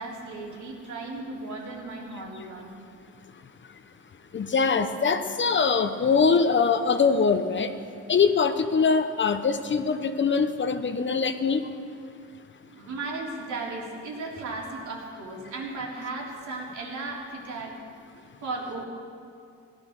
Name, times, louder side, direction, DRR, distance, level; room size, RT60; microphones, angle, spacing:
voice 1, 0.0-2.7 12.7-17.8 18.4-18.9, right 3 dB, 70° right, -2 dB, 3.5 m, -35 dB
voice 2, 4.3-7.7 8.1-11.6, left 5 dB, 40° left, 9 dB, 1.0 m, -23 dB
16.0 x 11.5 x 6.6 m, 2.4 s
cardioid pair, 90°, 30 cm